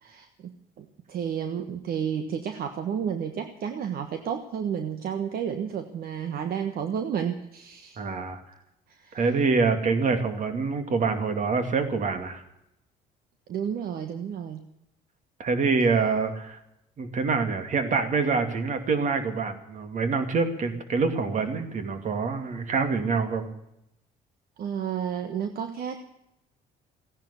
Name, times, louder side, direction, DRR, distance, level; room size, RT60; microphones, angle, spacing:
voice 1, 0.0-8.0 8.9-9.2 13.5-14.7 24.6-26.0, right 8 dB, 65° right, 7 dB, 1.4 m, -31 dB
voice 2, 8.0-8.4 9.1-12.4 15.4-16.6 17.0-23.5, right 4 dB, 45° right, 8 dB, 2.6 m, -26 dB
16.5 x 10.5 x 8.2 m, 0.82 s
cardioid pair, 110°, 17 cm